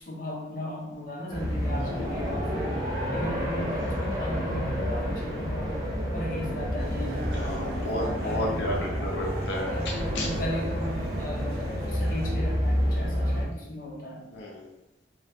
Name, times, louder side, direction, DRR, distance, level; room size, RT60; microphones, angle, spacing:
voice 1, 0.1-2.8 3.1-5.8 6.1-8.6 9.7-14.2, left 1 dB, 55° left, -3 dB, 0.7 m, -36 dB
sound 1, 1.3-13.4, equal, 20° right, 0.6 m, -29 dB
sound 2, 6.8-12.3, right 1 dB, 60° right, 0.4 m, -44 dB
voice 2, 7.3-9.7 10.1-10.3 14.3-14.7, left 1 dB, 85° left, -2 dB, 0.6 m, -33 dB
2.9 x 2.3 x 3.4 m, 0.91 s
head